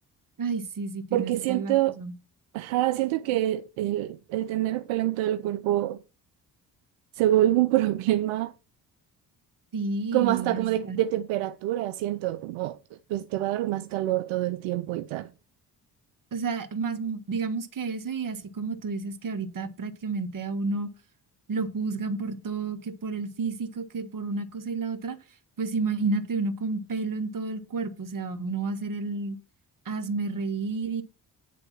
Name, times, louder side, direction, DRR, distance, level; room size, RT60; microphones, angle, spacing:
voice 1, 0.4-2.1 9.7-11.0 16.3-20.9 21.5-25.2 25.6-29.4 29.8-31.0, right 4 dB, 40° right, 1.6 m, -31 dB
voice 2, 1.1-2.0 2.5-6.0 7.1-8.5 10.1-12.8 13.1-15.3, right 14 dB, 75° right, 0.6 m, -26 dB
10.5 x 3.7 x 7.3 m
hypercardioid pair, 45°, 48 cm